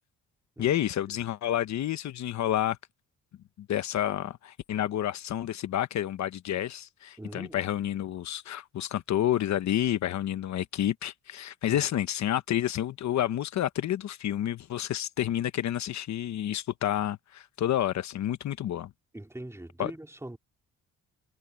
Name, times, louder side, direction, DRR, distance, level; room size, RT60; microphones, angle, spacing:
voice 1, 0.6-2.8 3.6-18.9 19.8-19.9, left 11 dB, 65° left, 1.0 m, -29 dB
voice 2, 7.2-7.6 11.6-11.8 19.1-20.4, right 1 dB, 10° right, 3.9 m, -42 dB
cardioid pair, 90°, 30 cm